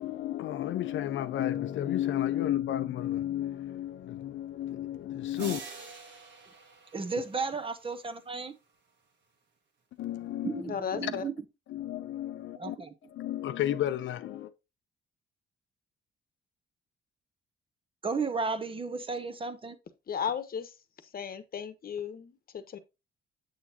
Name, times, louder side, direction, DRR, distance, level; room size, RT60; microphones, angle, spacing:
voice 1, 0.0-5.6 10.0-10.6 11.0-11.1 11.7-12.8 13.1-14.5, left 12 dB, 75° left, 0.6 m, -32 dB
sound 1, 5.4-7.9, right 5 dB, 65° right, 1.7 m, -45 dB
voice 2, 6.9-8.6 10.4-11.4 12.6-12.9 18.0-19.8, right 4 dB, 25° right, 0.9 m, -34 dB
voice 3, 10.7-11.2 20.1-20.7 21.1-22.8, left 7 dB, 50° left, 1.1 m, -35 dB
8.1 x 6.3 x 2.8 m
cardioid pair, 90°, 20 cm